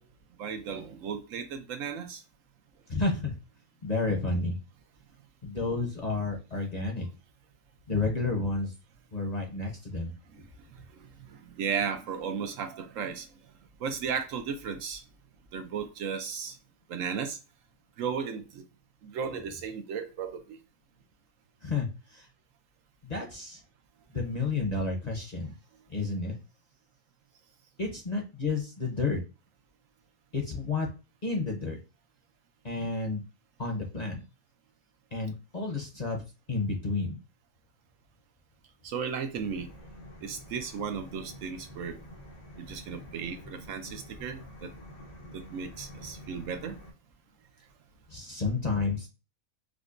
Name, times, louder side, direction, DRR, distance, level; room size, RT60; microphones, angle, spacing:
voice 1, 0.4-2.2 11.3-13.3 13.8-15.0 15.5-16.6 16.9-17.4 18.0-18.6 19.0-20.6 38.8-39.7 40.2-42.0 42.6-44.7 45.3-46.8, right 6 dB, 70° right, 0.9 m, -35 dB
voice 2, 2.9-3.4 3.8-4.6 5.4-7.1 7.9-8.7 9.1-10.1 21.6-22.3 23.0-23.6 24.1-25.5 25.9-26.4 27.8-29.2 30.3-30.9 31.2-31.8 32.6-33.2 33.6-34.2 35.1-36.2 36.5-37.1 48.1-49.1, left 3 dB, 35° left, 0.8 m, -31 dB
sound 1, 39.3-46.9, equal, 70° left, 1.4 m, -47 dB
5.0 x 2.1 x 2.5 m
omnidirectional pair, 1.5 m